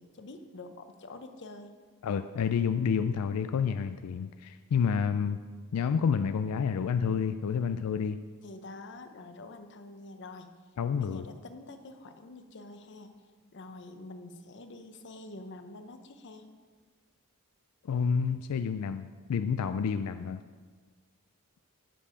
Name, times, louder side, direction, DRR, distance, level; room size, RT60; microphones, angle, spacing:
voice 1, 0.0-1.8 8.4-10.5 11.0-13.2 13.5-16.5, left 2 dB, 55° left, 7 dB, 0.7 m, -46 dB
voice 2, 2.0-5.4 5.7-8.2 10.8-11.2 17.8-20.4, left 6 dB, 85° left, 10 dB, 0.4 m, -29 dB
9.9 x 6.8 x 5.0 m, 1.5 s
head